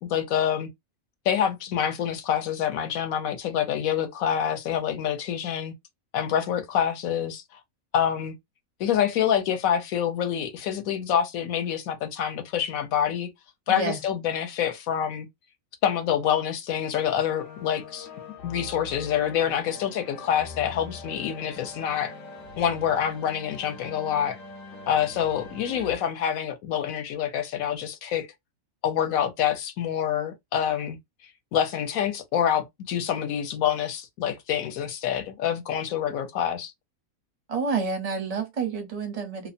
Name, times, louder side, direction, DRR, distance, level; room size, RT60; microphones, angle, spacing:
voice 1, 0.0-0.7 1.3-5.7 6.1-7.4 7.9-8.3 8.8-13.3 13.7-15.3 15.8-18.1 18.4-22.1 22.6-24.4 24.9-28.3 28.8-31.0 31.5-36.7, left 9 dB, 75° left, 1.0 m, -26 dB
voice 2, 13.7-14.0 37.5-39.5, right 4 dB, 40° right, 0.5 m, -29 dB
sound 1, 17.2-26.0, left 3 dB, 55° left, 1.0 m, -43 dB
2.6 x 2.1 x 2.6 m
omnidirectional pair, 1.5 m